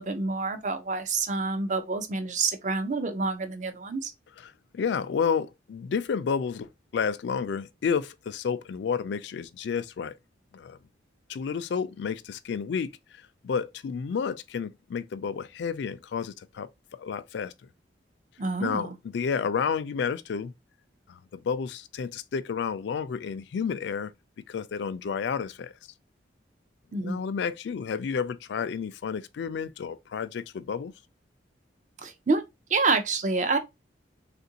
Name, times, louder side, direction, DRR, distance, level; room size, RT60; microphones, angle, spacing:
voice 1, 0.0-4.1 18.4-19.0 26.9-27.2 32.0-32.4 32.7-33.6, right 3 dB, 40° right, 0.5 m, -28 dB
voice 2, 4.4-10.1 10.5-10.8 11.3-13.0 13.4-16.7 17.0-17.5 18.6-20.5 21.1-24.1 24.5-25.7 27.0-30.9, left 6 dB, 65° left, 0.3 m, -31 dB
3.6 x 2.5 x 2.7 m
head